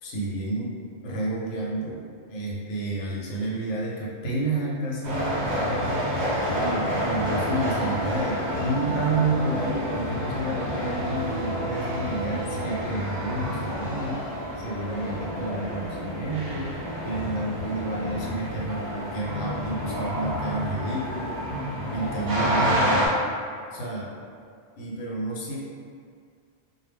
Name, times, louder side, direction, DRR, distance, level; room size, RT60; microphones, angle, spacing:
voice 1, 0.0-2.0 2.3-5.8 6.5-14.2 14.6-21.4 21.9-22.8 23.7-24.1 24.8-25.6, right 2 dB, 80° left, -4 dB, 0.9 m, -30 dB
sound 1, 5.0-23.1, equal, 50° right, 0.6 m, -29 dB
2.1 x 2.0 x 3.4 m, 2.2 s
omnidirectional pair, 1.2 m